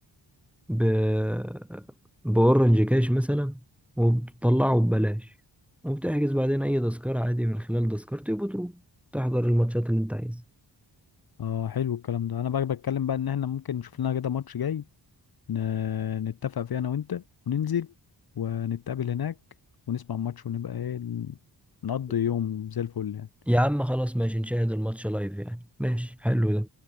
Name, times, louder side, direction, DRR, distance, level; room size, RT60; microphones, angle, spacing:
voice 1, 0.7-1.9 2.2-3.6 4.0-5.3 5.8-8.7 9.1-10.4 23.5-26.7, equal, 5° right, 1.2 m, -25 dB
voice 2, 11.4-14.8 15.5-17.9 18.4-19.4 19.9-21.4 21.8-23.3, left 9 dB, 55° left, 1.1 m, -29 dB
wide cardioid pair, 145°, 43 cm